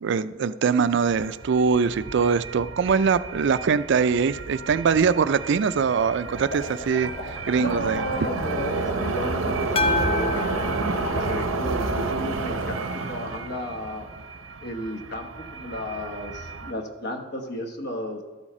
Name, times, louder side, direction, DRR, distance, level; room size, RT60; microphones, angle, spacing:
voice 1, 0.0-8.0, right 5 dB, 60° right, 15 dB, 0.4 m, -23 dB
sound 1, 0.8-16.7, right 3 dB, 90° right, 0.7 m, -31 dB
sound 2, 6.1-12.9, equal, 85° left, 2.3 m, -37 dB
voice 2, 7.6-14.1 14.6-18.2, equal, 55° left, 4 dB, 1.1 m, -33 dB
sound 3, 9.8-12.1, left 3 dB, 30° left, 0.5 m, -29 dB
12.5 x 7.2 x 4.3 m, 1.3 s
head